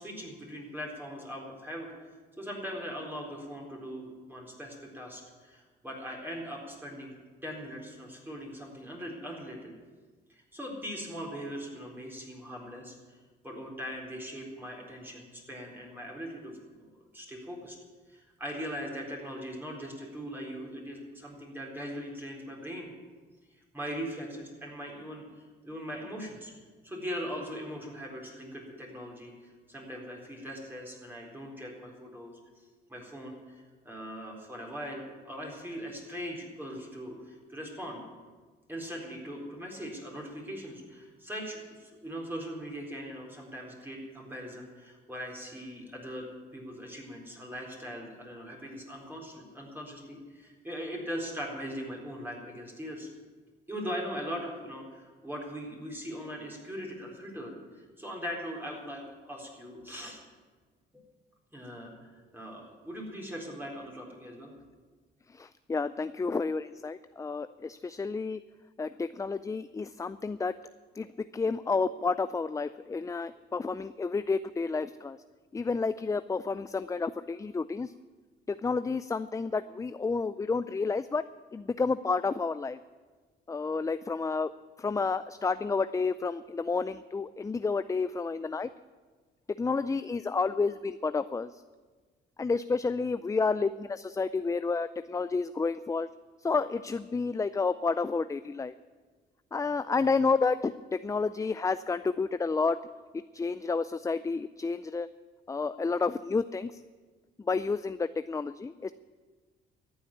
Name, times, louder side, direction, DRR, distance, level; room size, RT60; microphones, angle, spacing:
voice 1, 0.0-2.1 2.4-7.1 7.4-9.8 10.3-13.2 13.4-16.9 17.1-17.8 18.1-22.9 23.7-26.5 26.8-32.4 32.9-38.0 38.7-46.3 46.5-53.1 53.7-60.2 60.9-61.1 61.5-64.5, equal, 10° right, -2 dB, 4.0 m, -40 dB
voice 2, 65.3-68.4 68.8-70.5 71.0-75.2 75.5-77.9 78.5-81.2 81.5-82.8 83.5-84.5 84.8-88.7 89.6-91.6 92.4-96.1 96.4-98.7 99.5-102.8 103.3-105.1 105.5-106.8 107.4-108.9, left 4 dB, 15° left, 13 dB, 0.4 m, -30 dB
14.0 x 8.0 x 9.8 m, 1.4 s
cardioid pair, 90°, 20 cm